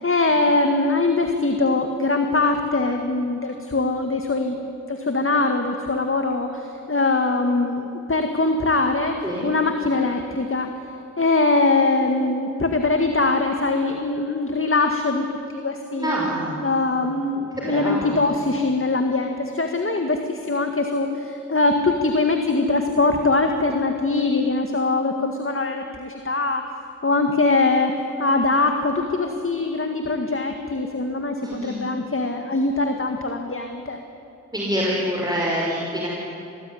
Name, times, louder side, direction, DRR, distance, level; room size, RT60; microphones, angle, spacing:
voice 1, 0.0-10.7 11.2-16.2 16.6-26.6 27.0-34.0, left 3 dB, 45° left, 5 dB, 1.9 m, -22 dB
voice 2, 16.0-16.6 17.5-18.2 31.4-31.8 34.5-36.1, equal, 15° right, -4 dB, 5.5 m, -26 dB
27.0 x 19.0 x 9.9 m, 3.0 s
wide cardioid pair, 70°, 29 cm